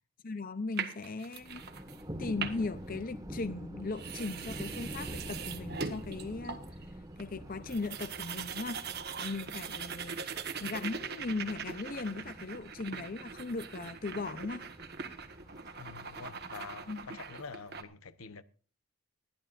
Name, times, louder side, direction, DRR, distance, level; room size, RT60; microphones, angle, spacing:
voice 1, 0.2-1.6 2.2-6.8 7.2-8.8 9.2-10.2 10.6-14.6 16.9-17.1, left 3 dB, 40° left, 0.6 m, -38 dB
sound 1, 0.8-2.0 2.3-2.8 3.6-3.7 3.9-6.8 7.2-7.3 7.5-17.8, right 6 dB, 45° right, 1.4 m, -41 dB
Thunder, 1.4-17.3, equal, 15° right, 1.5 m, -47 dB
voice 2, 15.8-18.4, left 4 dB, 75° left, 0.9 m, -46 dB
20.0 x 13.5 x 2.6 m
head